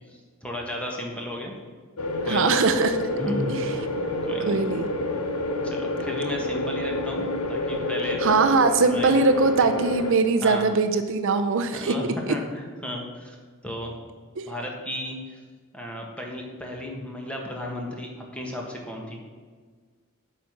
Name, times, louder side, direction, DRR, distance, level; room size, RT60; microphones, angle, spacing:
voice 1, 0.1-1.5 2.2-2.5 3.2-3.7 4.2-4.6 5.6-8.2 8.8-9.2 9.6-9.7 10.4-10.6 11.7-13.4 13.6-13.9 14.5-15.4 15.7-19.2, left 1 dB, 5° left, -1 dB, 1.5 m, -34 dB
sound 1, 2.0-10.1, left 2 dB, 90° left, 0.9 m, -28 dB
voice 2, 2.3-3.0 3.5-3.6 4.5-4.9 8.2-11.9 12.3-12.4 14.4-14.5, right 4 dB, 65° right, 8 dB, 0.6 m, -21 dB
8.3 x 5.0 x 7.2 m, 1.5 s
head